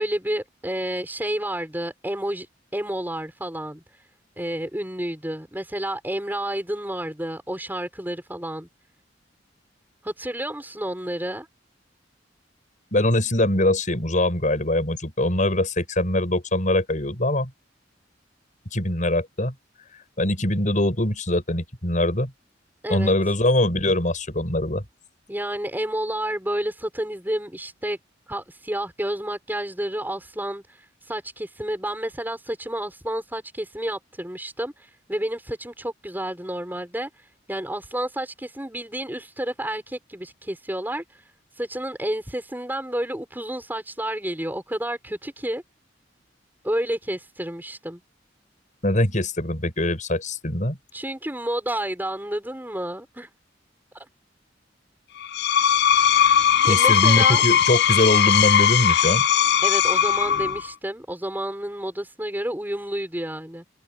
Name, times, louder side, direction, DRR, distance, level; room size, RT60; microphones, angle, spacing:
voice 1, 0.0-2.5 2.7-3.8 4.4-8.7 10.0-11.5 22.8-23.1 25.3-28.0 28.3-30.6 31.1-37.1 37.5-41.0 41.6-45.6 46.6-48.0 50.9-53.3 53.9-54.1 56.6-57.4 59.6-63.6, right 1 dB, 10° right, 6.3 m, -30 dB
voice 2, 12.9-17.5 18.7-19.5 20.2-22.3 22.9-24.8 48.8-50.8 56.7-59.2, left 1 dB, 40° left, 6.5 m, -22 dB
Screech, 55.2-60.7, left 9 dB, 60° left, 0.6 m, -19 dB
head